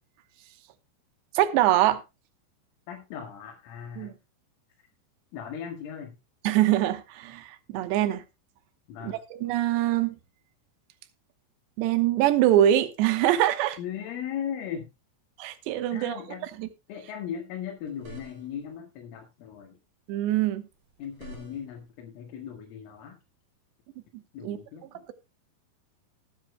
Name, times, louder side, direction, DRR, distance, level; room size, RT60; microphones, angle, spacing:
voice 1, 1.3-2.0 4.0-4.1 6.4-8.2 9.0-10.2 11.8-13.8 15.4-16.2 16.6-16.7 20.1-20.6 24.4-24.6, right 12 dB, 75° right, 3.0 m, -23 dB
voice 2, 2.9-4.1 5.3-6.1 8.9-9.2 13.8-14.9 15.9-16.5 16.9-19.8 21.0-23.2 24.3-25.1, left 8 dB, 85° left, 4.2 m, -38 dB
sound 1, 17.8-18.7 20.7-21.9, right 2 dB, 30° right, 6.2 m, -48 dB
19.5 x 10.0 x 2.2 m
omnidirectional pair, 5.6 m